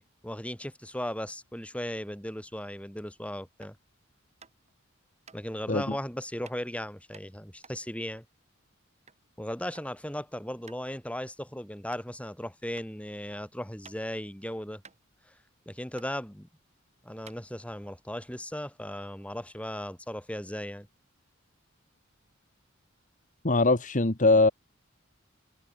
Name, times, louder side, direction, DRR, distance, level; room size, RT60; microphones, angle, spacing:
voice 1, 0.0-3.8 5.3-8.2 9.4-14.8 15.3-15.4 15.7-16.5 17.0-20.9, left 1 dB, 5° left, 4.6 m, -37 dB
sound 1, 3.6-3.8 4.4-4.7 5.2-5.4 6.4-6.6 7.1-9.2 9.5-9.9 10.2-10.3 10.7-10.9 11.3-11.4 11.9-12.0 12.7-12.9 13.3-14.3 14.5-14.6 14.8-15.6 15.9-16.1 16.7-16.8 17.2-17.9, right 5 dB, 35° right, 6.7 m, -53 dB
voice 2, 23.4-24.5, left 3 dB, 40° left, 1.6 m, -21 dB
head